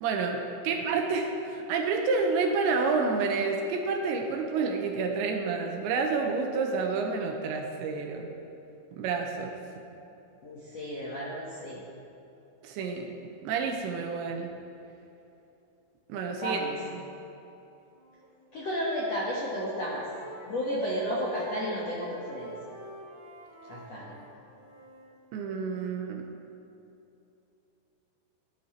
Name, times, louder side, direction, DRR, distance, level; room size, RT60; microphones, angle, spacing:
voice 1, 0.0-8.3 8.9-9.6 12.6-13.1 13.4-14.5 16.1-16.6 25.3-26.3, right 4 dB, 80° right, 2 dB, 3.0 m, -29 dB
voice 2, 10.4-11.8 16.3-16.8 18.5-20.0 20.5-22.7 23.7-24.2, equal, 70° left, -6 dB, 1.5 m, -32 dB
Wind instrument woodwind instrument, 17.8-18.3 18.5-25.1, equal, 45° left, 4.8 m, -49 dB
16.5 x 11.5 x 4.5 m, 2.8 s
omnidirectional pair, 5.5 m